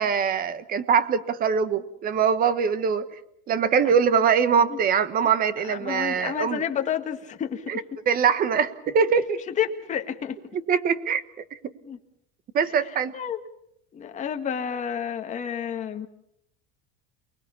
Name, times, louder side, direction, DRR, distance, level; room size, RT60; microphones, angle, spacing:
voice 1, 0.0-3.1 3.5-6.6 7.7-9.4 10.7-11.2 11.6-11.7 12.5-13.1, right 6 dB, 25° right, 14 dB, 1.2 m, -23 dB
voice 2, 5.7-7.7 9.6-10.4 11.9-12.0 12.7-12.8 13.1-13.4 13.9-16.1, left 8 dB, 20° left, 5 dB, 1.8 m, -30 dB
28.5 x 20.5 x 7.0 m, 0.76 s
cardioid pair, 175°, 32 cm